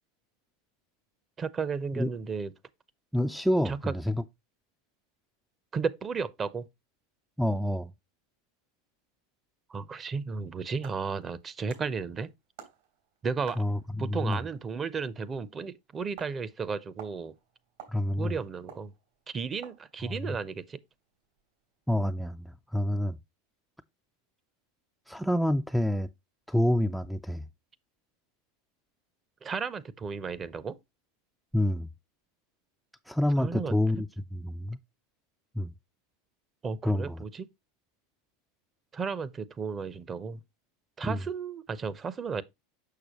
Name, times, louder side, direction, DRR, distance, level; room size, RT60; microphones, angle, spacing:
voice 1, 1.4-2.5 3.6-3.9 5.7-6.7 9.7-12.3 13.2-13.6 14.0-17.4 18.2-18.9 19.3-20.8 29.4-30.8 33.4-34.0 36.6-37.5 38.9-40.4 41.0-42.4, right 5 dB, 25° right, 0.7 m, -34 dB
voice 2, 3.1-4.2 7.4-7.9 13.6-14.4 17.9-18.3 20.0-20.3 21.9-23.2 25.1-26.1 26.5-27.5 31.5-31.9 33.1-34.1 34.3-34.8 35.6-35.7 36.8-37.2 41.0-41.2, left 1 dB, ahead, 0.4 m, -28 dB
sound 1, 10.8-22.3, right 8 dB, 75° right, 3.7 m, -53 dB
6.6 x 6.2 x 2.9 m
hypercardioid pair, 100°, 0 cm